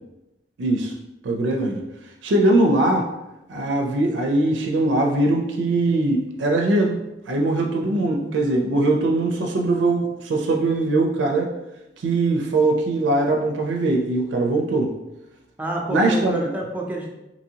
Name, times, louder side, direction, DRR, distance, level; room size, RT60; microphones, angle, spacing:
voice 1, 0.6-0.9 1.2-1.8 2.2-3.1 3.5-7.0 7.3-11.5 12.0-14.9 15.9-16.5, right 2 dB, 80° right, 1 dB, 0.4 m, -21 dB
voice 2, 7.7-8.4 15.6-17.1, right 1 dB, 10° right, -1 dB, 0.4 m, -29 dB
2.8 x 2.7 x 2.7 m, 0.95 s
head